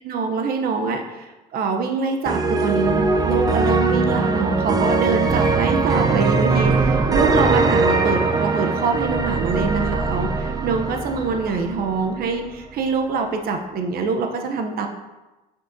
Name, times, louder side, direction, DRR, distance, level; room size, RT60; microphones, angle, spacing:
voice 1, 0.0-14.9, right 4 dB, 65° right, 4 dB, 0.8 m, -24 dB
sound 1, 2.3-12.3, right 3 dB, 20° right, 0.5 m, -21 dB
sound 2, 5.1-7.6 7.9-9.2, left 2 dB, 5° right, 2.0 m, -39 dB
6.3 x 5.5 x 2.7 m, 1.1 s
cardioid pair, 110°, 17 cm